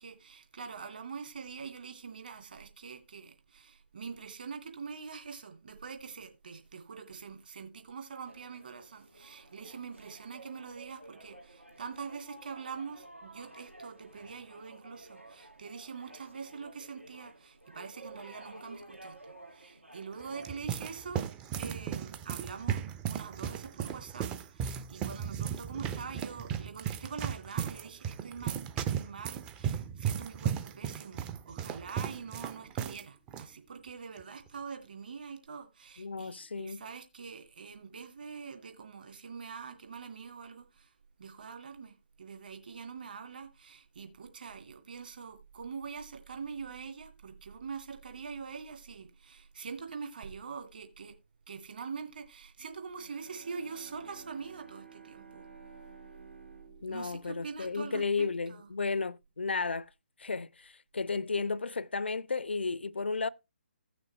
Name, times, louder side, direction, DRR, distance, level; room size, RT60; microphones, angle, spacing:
voice 1, 0.0-19.1 19.5-21.3 21.6-40.9 41.2-51.1 51.5-55.5 56.9-58.7, right 5 dB, 50° right, 2.4 m, -44 dB
sound 1, 8.2-20.6, right 1 dB, 90° right, 2.6 m, -53 dB
sound 2, 20.1-33.0 33.3-33.4 34.2-34.5, right 8 dB, 15° right, 0.5 m, -36 dB
voice 2, 36.0-36.8 56.8-59.9 60.2-63.3, left 4 dB, 65° left, 0.5 m, -33 dB
Bowed string instrument, 52.8-58.4, right 5 dB, 75° right, 2.7 m, -54 dB
16.0 x 6.2 x 3.3 m
figure-of-eight pair, 140°, 6 cm